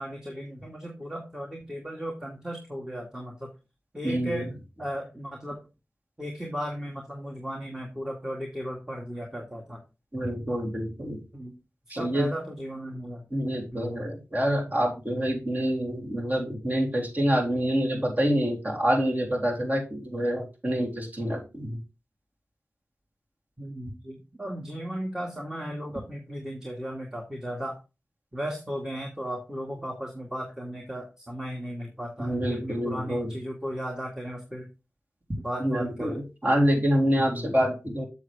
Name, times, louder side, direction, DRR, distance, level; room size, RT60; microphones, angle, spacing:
voice 1, 0.0-3.5 3.9-5.6 6.2-9.8 10.5-10.6 11.3-11.5 12.0-13.3 13.7-14.0 23.6-27.8 28.3-34.7 35.4-36.2 37.2-37.5, equal, 10° right, 1 dB, 2.0 m, -36 dB
voice 2, 4.0-4.4 10.1-11.2 11.9-12.3 13.3-21.8 32.2-33.3 35.6-38.0, equal, 35° right, 0 dB, 3.3 m, -26 dB
7.4 x 6.9 x 3.5 m, 0.28 s
cardioid pair, 45°, 5 cm